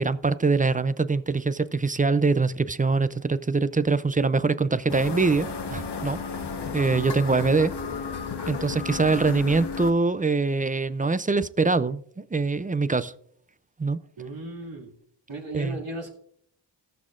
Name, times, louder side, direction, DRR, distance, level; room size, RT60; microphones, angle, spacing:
voice 1, 0.0-6.2 6.7-7.7 8.5-13.1 13.8-14.0 15.5-15.8, right 4 dB, 20° right, 14 dB, 0.4 m, -23 dB
sound 1, 4.9-9.9, left 5 dB, 60° left, 1.1 m, -33 dB
voice 2, 14.2-14.9 15.3-16.1, right 1 dB, 75° right, -2 dB, 2.6 m, -36 dB
18.0 x 6.3 x 2.5 m, 0.65 s
wide cardioid pair, 65°, 45 cm